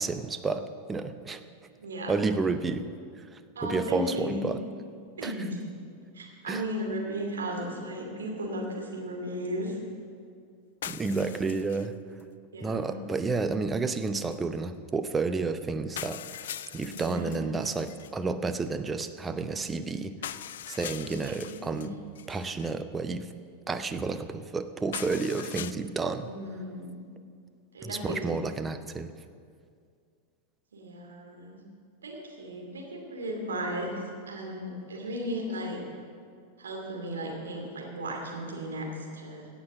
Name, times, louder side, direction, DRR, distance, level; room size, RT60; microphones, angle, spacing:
voice 1, 0.0-1.4 2.1-2.9 3.6-4.6 5.2-5.3 6.5-6.7 10.9-12.0 12.6-16.5 16.7-20.3 20.7-22.0 22.3-23.3 23.7-26.3 27.8-29.1, right 4 dB, 15° right, 10 dB, 0.6 m, -31 dB
voice 2, 1.8-2.1 3.6-4.4 5.2-5.6 6.1-9.8 12.5-13.0 16.9-17.4 21.0-21.9 26.2-27.1 27.7-28.4 30.7-31.6 32.0-33.9 34.3-35.8 36.6-38.9 39.1-39.5, equal, 70° right, 0 dB, 2.6 m, -35 dB
sound 1, 10.8-11.9 12.2-12.3 14.3-14.4 15.3-15.4 16.0-18.1 20.2-21.9 22.2-22.7 24.9-25.7, left 10 dB, 60° left, 0.3 m, -41 dB
17.0 x 6.1 x 7.3 m, 2.2 s
figure-of-eight pair, 90°, 0 cm